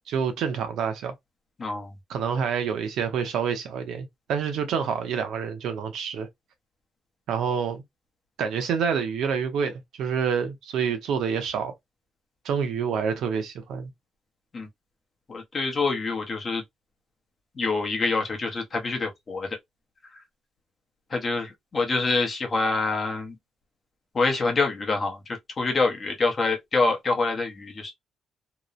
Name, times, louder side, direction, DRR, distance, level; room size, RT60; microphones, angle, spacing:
voice 1, 0.1-1.1 2.1-6.3 7.3-7.8 8.4-11.7 12.4-13.9, right 7 dB, 75° right, 0.7 m, -27 dB
voice 2, 1.6-1.9 14.5-14.7 15.3-16.6 17.6-19.6 21.1-23.4 24.1-27.9, left 3 dB, 30° left, 0.7 m, -26 dB
2.9 x 2.0 x 2.4 m
cardioid pair, 160°, 0 cm